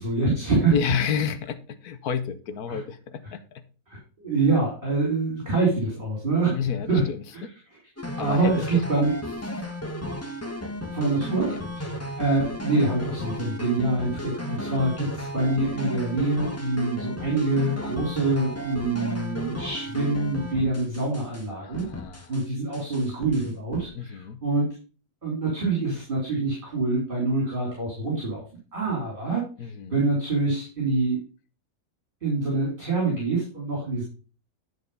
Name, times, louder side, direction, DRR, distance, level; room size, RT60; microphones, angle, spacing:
voice 1, 0.0-0.8 2.7-2.8 3.9-6.6 6.9-7.0 8.2-9.1 10.9-11.9 12.2-21.9 22.3-24.7 25.2-28.4 28.7-31.2 32.2-34.0, right 3 dB, 35° right, -3 dB, 3.4 m, -25 dB
voice 2, 0.7-3.6 6.5-7.5 8.2-9.0 11.5-11.6 21.6-22.3 23.9-24.4 29.6-30.1, left 7 dB, 80° left, 11 dB, 1.4 m, -31 dB
sound 1, 8.0-21.5 21.7-22.4 22.7-23.9, left 1 dB, 10° left, 1.1 m, -34 dB
10.0 x 4.7 x 5.4 m, 0.37 s
omnidirectional pair, 1.6 m